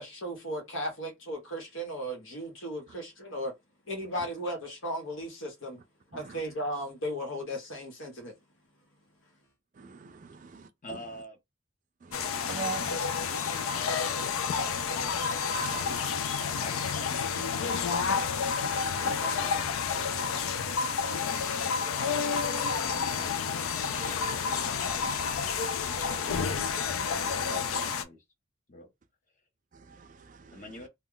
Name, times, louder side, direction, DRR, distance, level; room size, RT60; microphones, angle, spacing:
voice 1, 0.0-3.5 3.8-5.8 6.1-8.4 9.2-9.4, equal, 75° left, 1.1 m, -36 dB
voice 2, 9.8-10.7 12.0-12.9 15.5-16.0 21.3-21.5 23.9-24.1 29.7-30.6, right 4 dB, 40° right, 0.4 m, -41 dB
voice 3, 10.8-11.4 15.7-18.4 18.8-20.3 21.2-24.3 24.7-26.4 27.0-28.2 28.7-28.9 30.5-30.9, left 1 dB, 40° left, 0.8 m, -49 dB
sound 1, 12.1-28.0, left 6 dB, 90° left, 0.4 m, -30 dB
2.3 x 2.2 x 3.7 m
head